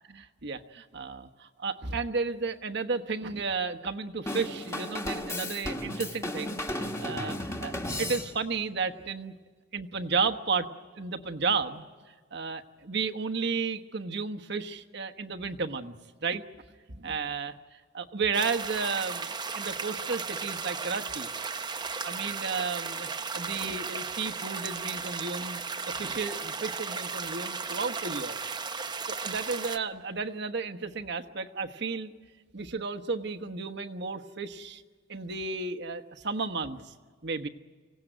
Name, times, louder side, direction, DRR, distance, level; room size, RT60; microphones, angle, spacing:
voice 1, 0.1-9.3 9.7-10.7 11.0-11.8 12.3-15.9 16.2-16.4 16.9-17.5 17.9-19.3 19.5-21.3 22.0-28.4 29.1-32.1 32.5-34.8 35.1-36.9 37.2-37.5, right 4 dB, 60° right, 6 dB, 1.2 m, -33 dB
Drum kit / Drum, 4.3-8.6, left 1 dB, 15° left, 1.6 m, -34 dB
sound 1, 18.3-29.8, right 5 dB, 20° right, 0.7 m, -35 dB
25.5 x 17.5 x 9.1 m, 1.5 s
head